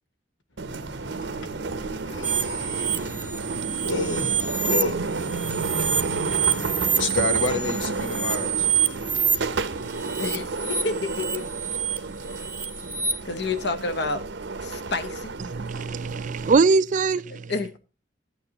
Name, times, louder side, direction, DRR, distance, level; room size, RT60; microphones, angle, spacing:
sound 1, 0.6-16.6, right 3 dB, 70° right, 0.8 m, -31 dB
voice 1, 0.7-8.7, left 3 dB, 90° left, 1.6 m, -32 dB
sound 2, 2.2-4.8 5.2-9.3 9.9-13.1, right 7 dB, 10° right, 0.8 m, -27 dB
voice 2, 10.2-11.4 13.2-14.2 14.6-15.3 17.3-17.7, left 3 dB, 60° left, 1.0 m, -29 dB
voice 3, 15.5-17.5, right 4 dB, 40° right, 0.4 m, -22 dB
13.0 x 9.1 x 2.9 m
head